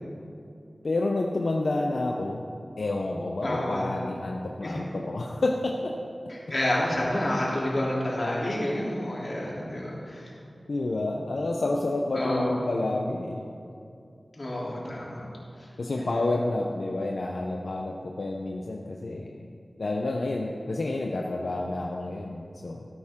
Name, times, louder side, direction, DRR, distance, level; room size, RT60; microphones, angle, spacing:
voice 1, 0.8-2.5 2.8-5.9 10.7-13.5 15.8-19.4 19.8-22.9, left 2 dB, 85° left, 0 dB, 0.7 m, -29 dB
voice 2, 3.4-3.9 4.6-4.7 6.3-10.3 12.1-12.5 14.3-15.3 15.6-15.7 16.0-16.2, left 1 dB, 55° left, -5 dB, 3.2 m, -29 dB
17.0 x 8.9 x 3.7 m, 2.5 s
wide cardioid pair, 50°, 0 cm